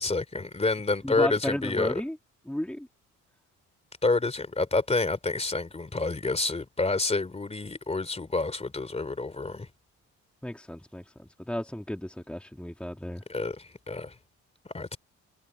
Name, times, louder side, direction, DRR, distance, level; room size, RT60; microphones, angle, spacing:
voice 1, 0.0-2.0 4.0-9.7 13.3-14.1 14.7-15.0, left 3 dB, 20° left, 3.2 m, -28 dB
voice 2, 1.0-2.2 2.5-2.9 10.4-13.2, equal, 5° left, 1.9 m, -34 dB
cardioid pair, 90°, 30 cm